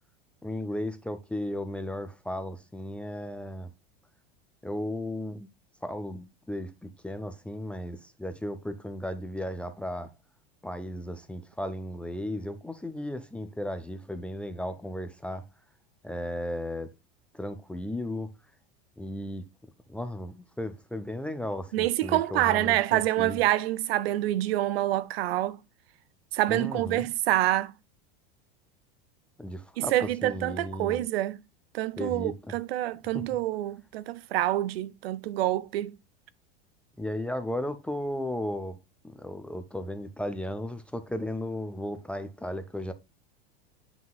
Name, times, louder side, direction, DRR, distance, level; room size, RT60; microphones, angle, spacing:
voice 1, 0.4-3.7 4.6-5.5 5.8-10.1 10.6-15.5 16.0-16.9 17.3-18.3 19.0-19.5 19.9-23.4 26.5-27.1 29.4-31.0 32.0-32.6 33.1-33.3 37.0-38.8 39.0-42.9, left 1 dB, 5° left, 0.4 m, -35 dB
voice 2, 21.7-25.6 26.3-27.7 29.8-31.4 31.7-36.0, right 15 dB, 85° right, 0.6 m, -27 dB
7.4 x 5.9 x 2.2 m
supercardioid pair, 140°, 30 cm